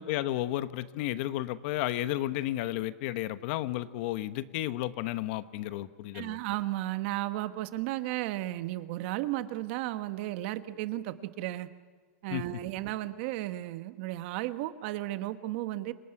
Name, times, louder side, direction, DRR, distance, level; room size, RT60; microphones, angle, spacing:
voice 1, 0.0-6.4 12.3-12.6, left 14 dB, 50° left, 13 dB, 1.1 m, -32 dB
voice 2, 6.1-11.7 12.2-15.9, right 16 dB, 50° right, 11 dB, 1.3 m, -34 dB
27.5 x 19.0 x 9.9 m, 1.5 s
supercardioid pair, 155°, 8 cm